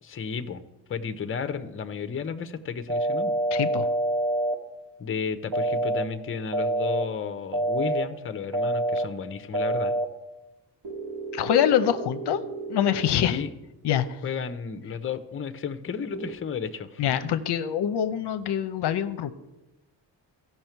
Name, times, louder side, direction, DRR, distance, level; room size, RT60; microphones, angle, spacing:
voice 1, 0.0-0.6 0.9-3.4 5.0-10.0 13.1-13.5 14.2-17.1, left 6 dB, 30° left, 9 dB, 0.7 m, -33 dB
sound 1, 2.9-4.5 5.5-6.0 6.5-7.0 7.5-8.0 8.5-9.0 9.5-10.0 10.8-13.1 16.1-16.3, right 1 dB, 65° right, 1.4 m, -27 dB
voice 2, 3.5-3.9 11.3-12.4 12.7-13.4 13.8-14.2 17.0-19.3, left 10 dB, 70° left, 10 dB, 0.7 m, -25 dB
15.0 x 5.7 x 4.5 m, 1.0 s
cardioid pair, 95°, 43 cm